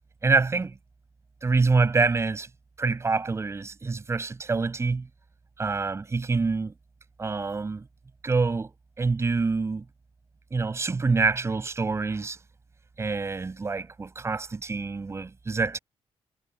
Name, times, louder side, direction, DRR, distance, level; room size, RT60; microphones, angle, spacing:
voice 1, 0.2-0.7 1.4-2.5 2.8-5.1 5.6-6.7 7.2-7.8 8.2-8.7 9.0-9.8 10.5-12.4 13.0-15.8, right 4 dB, 25° right, 6.0 m, -26 dB
cardioid pair, 115°, 10 cm